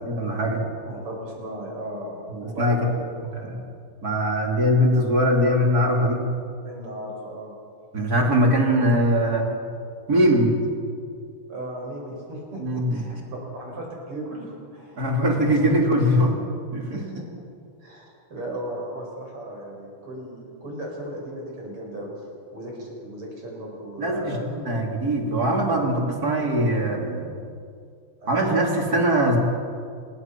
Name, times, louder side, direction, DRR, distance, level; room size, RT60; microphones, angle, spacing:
voice 1, 0.1-0.6 2.3-2.8 3.4-3.6 4.0-6.2 7.9-9.5 10.1-10.6 12.6-13.0 15.0-16.4 16.7-17.0 24.0-27.4 28.3-29.4, equal, 45° right, 0 dB, 3.5 m, -21 dB
voice 2, 0.8-3.1 6.6-7.5 8.5-9.0 11.5-15.5 16.9-17.4 17.8-22.1 22.5-24.5 28.2-28.8, right 1 dB, 90° right, -1 dB, 6.9 m, -36 dB
27.0 x 21.5 x 6.0 m, 2.3 s
omnidirectional pair, 2.4 m